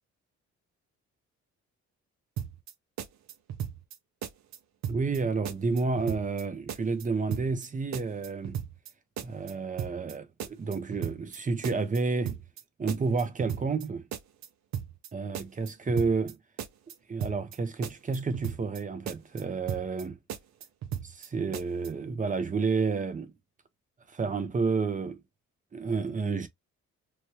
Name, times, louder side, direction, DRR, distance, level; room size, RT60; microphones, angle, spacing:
sound 1, 2.4-2.7 3.0-4.0 4.2-4.6 4.8-5.2 5.5-6.4 6.7-7.0 7.3-7.7 7.9-8.9 9.2-9.5 9.8-10.1 10.4-11.4 11.6-12.0 12.3-12.6 12.9-13.9 14.1-14.5 14.7-15.1 15.3-16.3 16.6-16.9 17.2-17.6 17.8-18.8 19.1-19.4 19.7-20.0 20.3-21.3 21.5-21.9, right 9 dB, 65° right, 0.6 m, -36 dB
voice 1, 4.9-8.6 9.2-12.4 12.8-14.1 15.1-16.4 17.1-20.2 20.9-23.3 24.1-25.2 25.7-26.5, right 4 dB, 25° right, 0.7 m, -30 dB
3.1 x 2.2 x 3.0 m
cardioid pair, 90°, 30 cm